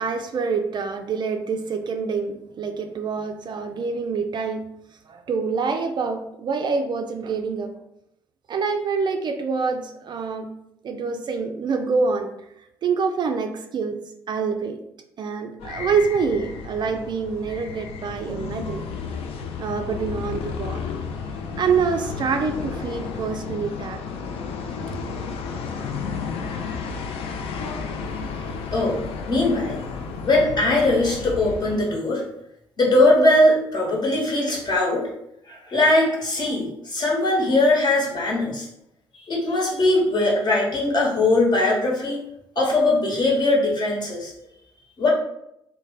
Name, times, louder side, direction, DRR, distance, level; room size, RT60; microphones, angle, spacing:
voice 1, 0.0-4.7 5.1-7.7 8.5-10.5 10.8-12.3 12.8-14.0 14.3-14.8 15.2-18.9 19.6-20.8 21.6-24.0 24.9-25.0, right 5 dB, 40° right, 6 dB, 0.3 m, -26 dB
sound 1, 15.6-31.8, left 5 dB, 60° left, 0.4 m, -32 dB
voice 2, 29.3-29.8 30.2-32.2 32.8-35.1 35.5-38.7 39.3-42.2 42.6-44.3 45.0-45.1, left 2 dB, 40° left, -2 dB, 1.2 m, -20 dB
3.1 x 2.1 x 3.5 m, 0.80 s
hypercardioid pair, 45°, 11 cm